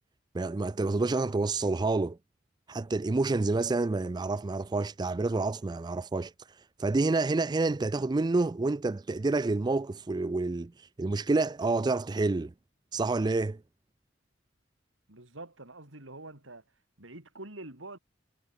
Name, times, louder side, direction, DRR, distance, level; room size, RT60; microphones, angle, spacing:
voice 1, 0.3-2.2 2.7-6.3 6.8-12.5 12.9-13.6, right 3 dB, 20° right, 0.4 m, -28 dB
voice 2, 15.1-16.6 17.0-18.0, right 2 dB, 90° right, 4.6 m, -45 dB
head